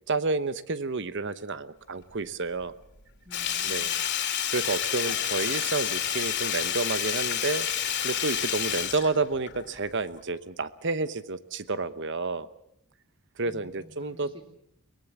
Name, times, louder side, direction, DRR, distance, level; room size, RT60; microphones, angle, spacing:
voice 1, 0.1-2.7 3.6-3.9 4.5-7.7 8.0-12.5 13.4-14.3, right 3 dB, 55° right, 14 dB, 1.0 m, -30 dB
voice 2, 3.2-4.0 13.5-14.6, equal, 25° right, 3 dB, 2.9 m, -51 dB
Sink (filling or washing), 3.3-9.8 10.2-10.3, left 9 dB, 55° left, 3.1 m, -29 dB
23.5 x 19.5 x 7.4 m, 0.74 s
head